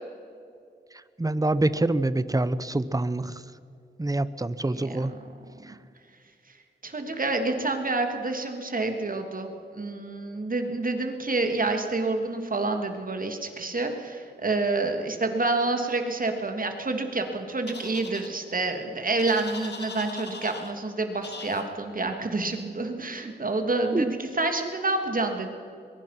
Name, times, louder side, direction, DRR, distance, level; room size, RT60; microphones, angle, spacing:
voice 1, 1.2-3.4 4.0-5.1 5.6-5.7 23.9-24.1, right 2 dB, 20° right, 15 dB, 0.9 m, -26 dB
voice 2, 4.6-5.2 6.5-6.6 6.8-25.5, right 3 dB, 50° right, 5 dB, 2.9 m, -28 dB
sound 1, 17.7-18.3 19.2-20.7 21.2-21.6, left 4 dB, 70° left, 2.6 m, -40 dB
22.0 x 22.0 x 6.0 m, 2.4 s
wide cardioid pair, 75°, 19 cm